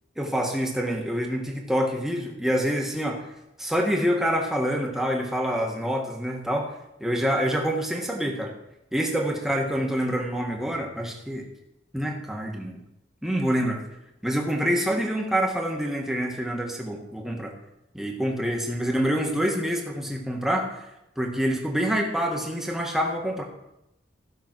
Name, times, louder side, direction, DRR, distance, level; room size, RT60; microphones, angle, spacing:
voice 1, 0.2-3.3 3.6-6.7 7.0-8.5 8.9-11.4 11.9-12.8 13.2-13.8 14.2-17.5 17.9-23.4, equal, ahead, 0 dB, 1.5 m, -26 dB
15.0 x 6.2 x 6.1 m, 0.87 s
head